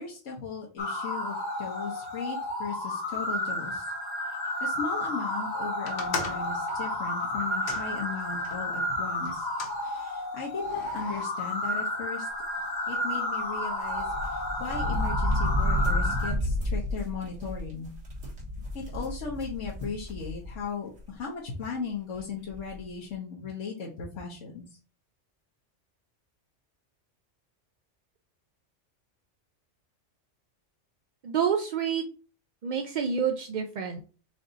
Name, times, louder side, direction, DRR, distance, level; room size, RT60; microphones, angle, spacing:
voice 1, 0.0-3.8 4.3-9.5 9.8-12.3 12.9-17.9 18.7-24.6, left 5 dB, 90° left, -3 dB, 1.3 m, -37 dB
sound 1, 0.8-16.3, left 1 dB, 40° left, 1.2 m, -32 dB
sound 2, 5.8-8.6 9.2-9.8 10.6-11.2, left 4 dB, 65° left, 1.2 m, -38 dB
sound 3, 13.9-20.6 21.0-21.1 22.1-22.2 22.5-22.8, equal, 80° right, 1.8 m, -31 dB
voice 2, 31.2-32.0 32.6-34.0, right 7 dB, 60° right, 5 dB, 0.5 m, -28 dB
5.2 x 2.6 x 3.9 m, 0.37 s
omnidirectional pair, 1.2 m